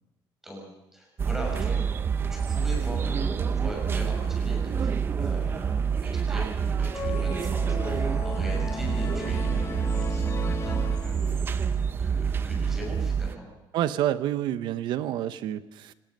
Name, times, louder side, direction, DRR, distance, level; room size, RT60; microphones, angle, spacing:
voice 1, 0.4-1.8 2.3-13.5, equal, 5° right, 0 dB, 6.7 m, -40 dB
sound 1, 1.2-13.4, right 6 dB, 25° right, 0.7 m, -27 dB
sound 2, 6.9-11.6, left 4 dB, 35° left, 2.7 m, -36 dB
voice 2, 13.7-15.9, right 12 dB, 70° right, 13 dB, 0.9 m, -28 dB
26.0 x 18.5 x 5.5 m, 0.98 s
cardioid pair, 170°, 8 cm